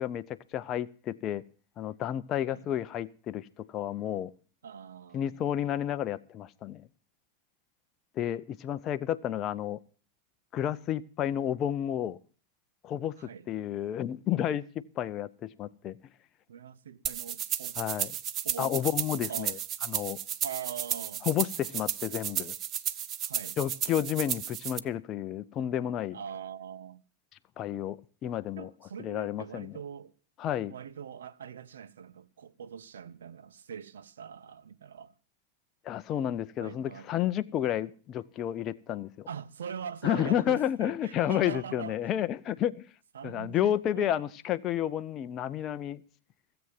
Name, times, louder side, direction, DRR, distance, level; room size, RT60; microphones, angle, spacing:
voice 1, 0.0-1.4 1.8-4.3 5.1-6.9 8.2-9.8 10.5-12.2 12.8-13.2 13.5-16.0 17.8-18.1 18.6-19.5 19.9-20.2 21.3-22.5 23.6-26.2 27.6-28.7 29.0-29.7 30.4-30.7 35.8-39.3 40.0-42.9 43.2-46.0, left 11 dB, 30° left, 0.6 m, -31 dB
voice 2, 4.6-5.4 13.2-13.5 16.5-17.8 18.4-18.8 19.3-19.6 20.4-21.3 23.2-23.6 26.1-27.0 28.6-30.1 30.7-35.1 36.6-37.3 39.3-42.1 43.1-44.3, right 8 dB, 65° right, 0.7 m, -42 dB
sound 1, 17.1-24.8, right 10 dB, 30° right, 0.7 m, -33 dB
16.5 x 8.0 x 7.3 m
figure-of-eight pair, 90°, 0 cm